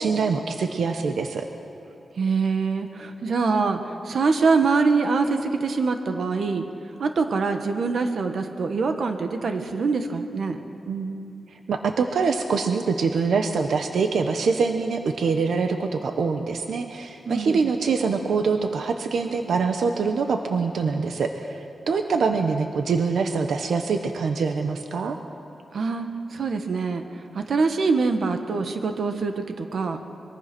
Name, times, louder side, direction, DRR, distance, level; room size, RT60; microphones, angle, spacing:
voice 1, 0.0-1.4 10.9-11.3 11.7-25.2, right 5 dB, 85° right, 5 dB, 1.2 m, -24 dB
voice 2, 2.2-6.6 7.0-10.6 17.2-17.7 25.7-26.1 26.3-27.0 27.3-30.0, right 4 dB, 60° right, 6 dB, 1.5 m, -24 dB
23.5 x 23.0 x 6.2 m, 2.7 s
wide cardioid pair, 145°, 0 cm